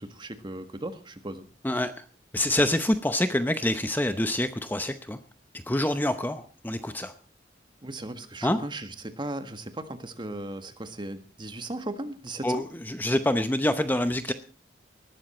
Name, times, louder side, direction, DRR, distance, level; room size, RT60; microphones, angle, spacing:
voice 1, 0.0-1.4 7.8-8.9 9.2-12.6, right 1 dB, 25° right, 9 dB, 1.7 m, -37 dB
voice 2, 1.6-2.0 2.3-5.2 5.5-7.1 8.4-8.6 12.4-14.3, left 1 dB, 10° left, 10 dB, 0.7 m, -26 dB
19.5 x 13.0 x 4.4 m, 0.38 s
head